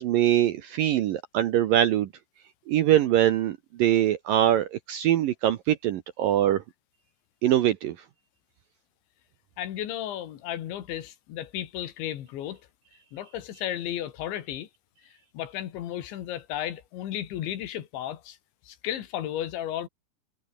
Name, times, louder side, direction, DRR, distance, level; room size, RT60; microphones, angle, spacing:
voice 1, 0.0-2.1 2.7-6.6 7.4-8.0, right 12 dB, 70° right, 2.2 m, -23 dB
voice 2, 9.6-12.6 13.1-14.7 15.3-18.4 18.7-19.9, left 11 dB, 80° left, 4.3 m, -34 dB
omnidirectional pair, 5.2 m